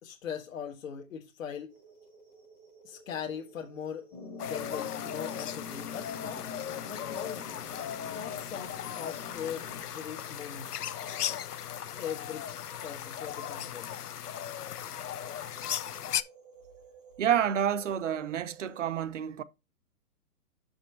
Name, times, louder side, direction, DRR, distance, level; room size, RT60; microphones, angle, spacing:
voice 1, 0.0-1.8 2.8-4.1 4.4-6.5 6.9-7.5 8.1-10.7 11.9-12.5 12.8-14.0, left 8 dB, 55° left, 1.2 m, -40 dB
sound 1, 1.7-18.9, equal, 5° left, 0.6 m, -55 dB
sound 2, 4.1-9.8, left 4 dB, 25° left, 1.2 m, -45 dB
sound 3, 4.4-16.2, left 10 dB, 70° left, 0.7 m, -37 dB
voice 2, 17.2-19.4, right 9 dB, 50° right, 0.6 m, -29 dB
6.4 x 5.4 x 4.4 m
hypercardioid pair, 160°, 47 cm